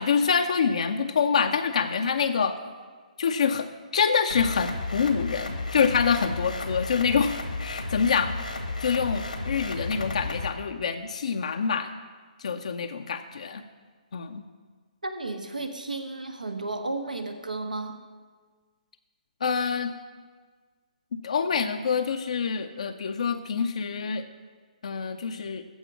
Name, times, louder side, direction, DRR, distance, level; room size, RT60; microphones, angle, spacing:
voice 1, 0.0-2.6 3.2-8.4 8.8-11.9 12.4-13.6 14.1-14.4 19.4-19.9 21.2-24.2 24.8-25.7, left 6 dB, 60° left, 6 dB, 0.6 m, -26 dB
sound 1, 4.3-10.5, left 2 dB, 80° left, 1.4 m, -33 dB
voice 2, 15.0-18.0, right 2 dB, 80° right, 6 dB, 1.3 m, -33 dB
14.5 x 5.1 x 7.3 m, 1.5 s
figure-of-eight pair, 130°, 4 cm